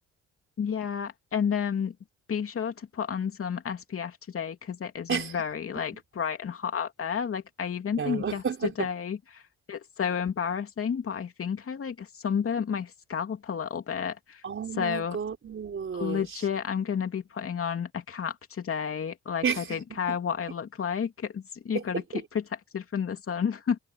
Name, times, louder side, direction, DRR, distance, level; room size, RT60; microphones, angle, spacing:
voice 1, 0.6-1.9 2.3-9.4 9.7-14.4 14.7-15.2 15.9-23.8, left 7 dB, 45° left, 2.9 m, -31 dB
voice 2, 8.0-8.9 14.4-16.2 19.4-20.2 21.7-21.8 22.1-22.2, right 6 dB, 45° right, 4.5 m, -31 dB
cardioid pair, 90°, 30 cm